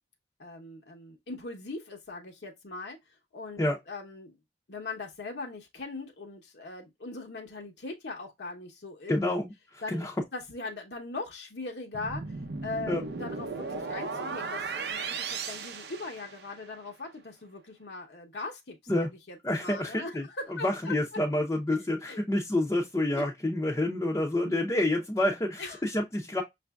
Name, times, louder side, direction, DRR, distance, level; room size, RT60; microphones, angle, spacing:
voice 1, 0.4-3.0 3.3-4.3 4.7-9.2 9.8-12.2 12.6-20.9 22.1-22.2 23.1-23.3 25.6-25.8, left 3 dB, 70° left, 0.9 m, -40 dB
voice 2, 9.1-10.1 12.9-13.0 18.9-19.1 19.4-20.2 20.6-26.4, left 1 dB, 15° left, 0.6 m, -28 dB
sound 1, 11.9-16.7, right 4 dB, 65° right, 0.6 m, -36 dB
5.9 x 2.6 x 2.3 m
head